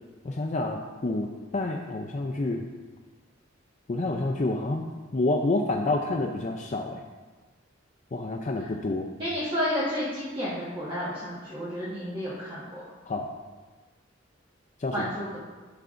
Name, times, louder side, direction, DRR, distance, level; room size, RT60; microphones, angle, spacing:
voice 1, 0.2-2.7 3.9-4.9 5.1-7.0 8.1-9.1 13.1-13.3 14.8-15.1, left 2 dB, 35° left, 2 dB, 0.4 m, -28 dB
voice 2, 9.2-12.8 14.9-15.4, equal, 25° right, -9 dB, 1.4 m, -31 dB
11.5 x 6.8 x 2.5 m, 1.3 s
head